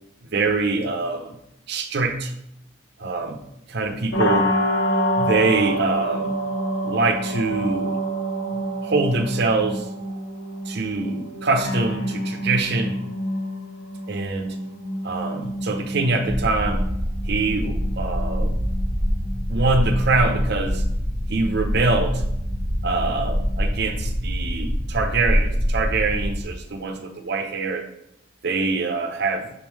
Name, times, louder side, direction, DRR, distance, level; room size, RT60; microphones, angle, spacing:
voice 1, 0.3-1.4 1.7-2.3 3.0-3.4 3.7-4.5 5.2-6.3 6.8-8.0 8.5-9.9 10.7-13.0 14.1-14.6 15.0-16.8 17.3-18.5 19.5-20.8 21.3-22.2 22.8-27.9 28.4-29.5, right 3 dB, 60° right, 6 dB, 0.7 m, -24 dB
sound 1, 4.1-23.9, equal, 80° left, 0.9 m, -29 dB
sound 2, 16.3-26.4, equal, 20° right, 1.1 m, -25 dB
6.7 x 3.7 x 4.6 m, 0.82 s
head